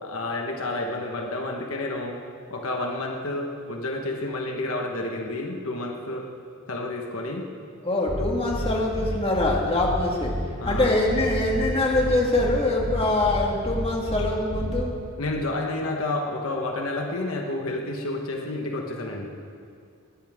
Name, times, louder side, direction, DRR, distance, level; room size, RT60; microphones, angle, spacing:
voice 1, 0.0-2.1 2.5-6.2 6.7-7.4 10.6-10.9 15.2-19.3, left 2 dB, 65° left, 1 dB, 1.4 m, -30 dB
voice 2, 7.8-10.3 10.7-14.9, left 2 dB, 25° left, -1 dB, 1.9 m, -24 dB
sound 1, 8.1-8.2 8.5-8.6 8.9-9.1 9.4-9.5 9.8-9.9 10.2-10.3 10.6-10.8 11.1-11.6 11.9-12.1 12.4-12.5 12.8-12.9 13.2-13.3 13.6-13.8 14.1-14.2 14.5-14.7, equal, ahead, 4.4 m, -31 dB
20.5 x 13.0 x 3.7 m, 2.3 s
head